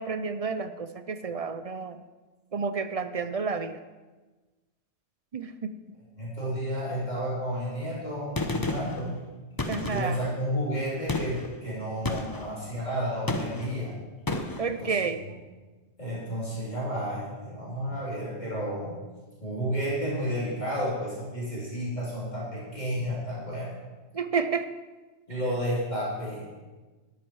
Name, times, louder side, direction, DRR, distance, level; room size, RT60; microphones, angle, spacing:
voice 1, 0.0-2.0 2.5-3.8 5.3-5.8 9.7-10.2 14.6-15.2 24.1-24.7 25.3-25.4, right 5 dB, 45° right, 11 dB, 0.5 m, -30 dB
voice 2, 6.2-9.2 9.9-13.9 14.6-14.9 16.0-19.0 19.4-23.8 25.3-26.5, equal, 35° left, -8 dB, 3.9 m, -31 dB
Gunshot gunfire, 8.4-9.0 9.6-10.3 11.1-11.5 12.1-12.5 13.3-13.8 14.3-14.7, left 2 dB, 20° left, 0.8 m, -31 dB
13.0 x 12.0 x 4.7 m, 1.3 s
omnidirectional pair, 1.2 m